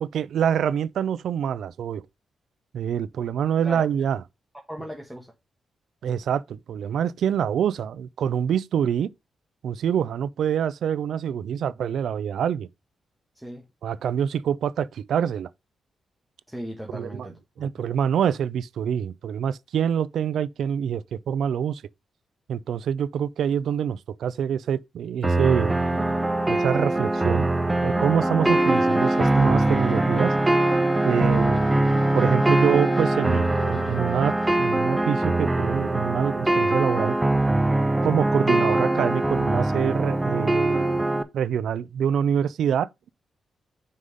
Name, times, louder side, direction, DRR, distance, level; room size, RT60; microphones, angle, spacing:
voice 1, 0.0-2.0 2.7-4.2 6.0-9.1 9.6-12.7 13.8-15.5 16.9-17.3 17.6-21.8 22.5-26.1 26.5-27.5 27.8-30.3 31.0-37.2 38.0-41.0 41.3-42.9, right 8 dB, 75° right, 0.3 m, -26 dB
voice 2, 4.7-5.3 13.3-13.6 16.5-17.9 31.0-31.3, equal, ahead, 1.3 m, -38 dB
sound 1, 25.2-41.2, right 2 dB, 20° right, 0.7 m, -22 dB
Trumpet, 28.5-34.6, left 2 dB, 35° left, 1.2 m, -37 dB
6.3 x 3.7 x 5.3 m
supercardioid pair, 60°, 0 cm